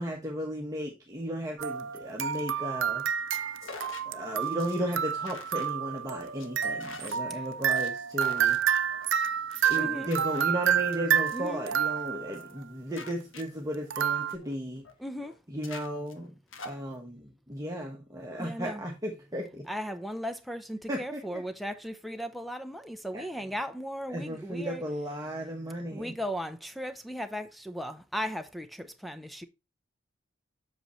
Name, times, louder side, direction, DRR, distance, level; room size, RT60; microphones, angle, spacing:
voice 1, 0.0-3.0 4.0-8.6 9.7-14.8 15.5-16.3 16.6-19.7 20.9-21.4 23.1-23.2 24.1-26.1, equal, 15° right, 1.1 m, -35 dB
sound 1, 1.6-12.5 13.9-14.4, right 8 dB, 65° right, 0.6 m, -29 dB
sound 2, 3.6-4.0 4.4-4.8 5.2-5.7 6.0-6.5 6.8-7.2 7.5-7.9 8.2-8.6 8.9-9.2 9.5-9.8 10.1-11.0 11.3-11.6 11.8-12.1 12.3-12.6 12.9-14.9 15.2-15.3 15.6-16.8, left 3 dB, 70° left, 1.5 m, -45 dB
voice 2, 9.8-10.1 11.3-11.6 15.0-15.3 18.4-18.8 19.7-24.8 25.9-29.5, equal, ahead, 0.6 m, -36 dB
8.0 x 6.2 x 3.1 m
head